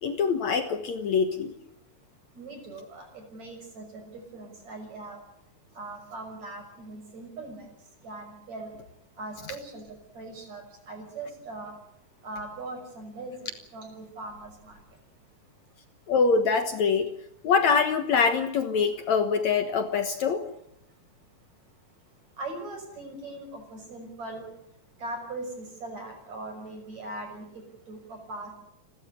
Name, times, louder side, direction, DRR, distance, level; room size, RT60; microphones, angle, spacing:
voice 1, 0.0-1.5 16.1-17.1 17.4-20.5, left 5 dB, 60° left, 7 dB, 2.3 m, -24 dB
voice 2, 2.4-3.1 3.3-3.8 4.1-5.2 5.8-7.7 8.0-8.7 9.2-9.8 10.2-10.6 10.9-11.7 12.2-13.3 13.7-14.7 22.4-24.5 25.0-27.6 27.9-28.5, right 2 dB, 50° right, 4 dB, 7.2 m, -40 dB
30.0 x 13.0 x 9.6 m, 0.78 s
omnidirectional pair, 4.1 m